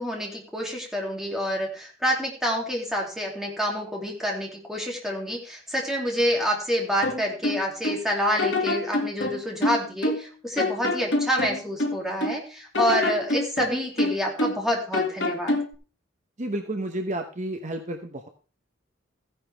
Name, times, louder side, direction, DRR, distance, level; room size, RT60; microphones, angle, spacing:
voice 1, 0.0-15.6, equal, ahead, -1 dB, 2.7 m, -28 dB
sound 1, 7.0-8.0 8.4-10.3 10.6-12.4 12.7-14.7 14.9-15.7, left 2 dB, 70° left, 2.0 m, -26 dB
voice 2, 16.4-18.3, right 1 dB, 40° right, 5 dB, 1.0 m, -31 dB
14.5 x 10.5 x 3.4 m, 0.36 s
head